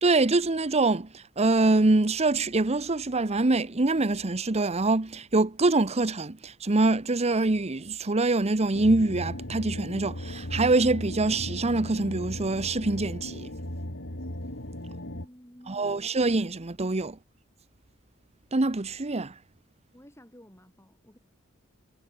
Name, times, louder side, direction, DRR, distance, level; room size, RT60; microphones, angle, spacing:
voice 1, 0.0-13.5 15.7-17.2 18.5-19.3, right 2 dB, 30° right, 0.9 m, -25 dB
sound 1, 8.7-15.3, left 1 dB, 60° left, 5.3 m, -37 dB
voice 2, 14.9-16.1 19.9-21.2, equal, 15° left, 5.9 m, -52 dB
head